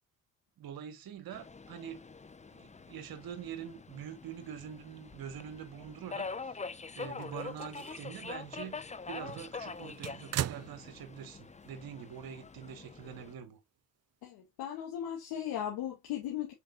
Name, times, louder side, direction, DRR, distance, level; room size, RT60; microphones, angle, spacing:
voice 1, 0.6-2.0 2.5-6.6 7.0-13.6, right 8 dB, 60° right, 1.7 m, -45 dB
Subway metro underground, 1.3-13.3, left 4 dB, 15° left, 0.7 m, -45 dB
sound 1, 7.0-8.2 8.6-8.7 9.2-11.4 11.7-11.8 13.0-13.1, right 12 dB, 40° right, 0.5 m, -40 dB
voice 2, 14.2-16.5, left 10 dB, 75° left, 2.2 m, -37 dB
7.5 x 5.2 x 2.5 m
hypercardioid pair, 50°, 40 cm